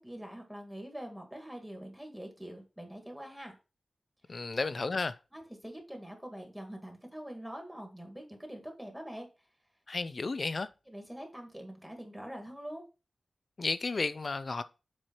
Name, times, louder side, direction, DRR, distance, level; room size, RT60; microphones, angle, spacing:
voice 1, 0.0-3.6 4.3-4.4 5.3-9.3 10.9-12.8, equal, 5° right, 1.8 m, -44 dB
voice 2, 4.3-5.2 9.9-10.7 13.6-14.6, left 3 dB, 45° left, 0.5 m, -32 dB
7.5 x 4.8 x 4.5 m
wide cardioid pair, 125°, 0 cm